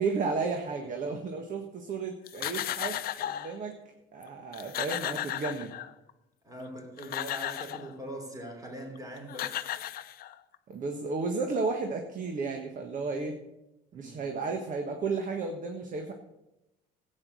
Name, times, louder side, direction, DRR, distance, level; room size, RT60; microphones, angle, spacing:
voice 1, 0.0-3.8 4.1-5.7 10.7-13.4 13.9-16.1, right 4 dB, 50° right, 4 dB, 1.5 m, -33 dB
sound 1, 2.3-3.6 4.2-4.3 4.5-6.1 6.8-7.9 9.0-9.1 9.3-10.5, left 12 dB, 60° left, 0.6 m, -35 dB
voice 2, 6.4-9.7 13.9-14.3, right 1 dB, 20° right, 2 dB, 3.3 m, -42 dB
13.0 x 8.9 x 6.3 m, 0.94 s
cardioid pair, 110°, 17 cm